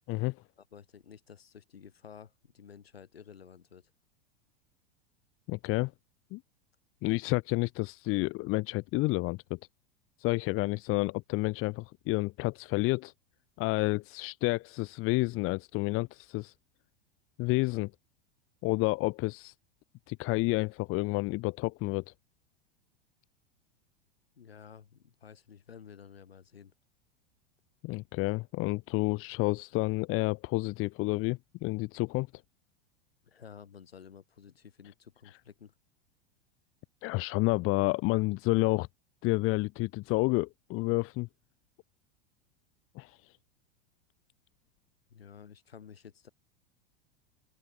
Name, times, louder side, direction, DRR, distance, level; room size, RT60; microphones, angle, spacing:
voice 1, 0.7-3.9 24.4-26.7 33.2-35.7 45.1-46.3, left 7 dB, 85° left, 7.1 m, -52 dB
voice 2, 5.5-5.9 6.3-6.4 7.0-9.6 10.2-13.1 13.6-16.5 17.4-17.9 18.6-19.5 20.1-22.1 27.8-32.3 37.0-38.9 39.2-41.3 43.0-43.3, left 23 dB, 45° left, 2.1 m, -30 dB
hypercardioid pair, 95°, 29 cm